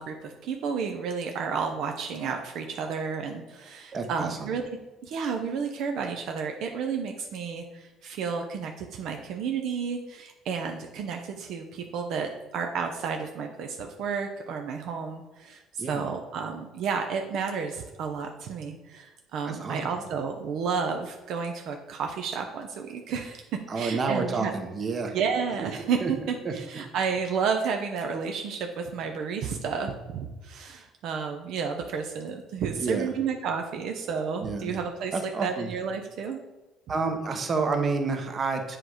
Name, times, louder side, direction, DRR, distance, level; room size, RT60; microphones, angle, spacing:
voice 1, 0.0-23.4 23.8-24.5 25.1-35.1 35.4-36.4, right 6 dB, 70° right, 4 dB, 0.6 m, -31 dB
voice 2, 3.9-4.5 15.8-16.1 19.5-20.0 23.7-25.1 25.6-25.7 26.0-26.1 26.4-26.6 32.8-33.1 34.4-34.7 35.1-35.7 36.9-38.8, right 4 dB, 35° right, 5 dB, 0.9 m, -29 dB
7.7 x 3.1 x 4.8 m, 1.1 s
cardioid pair, 105°, 0 cm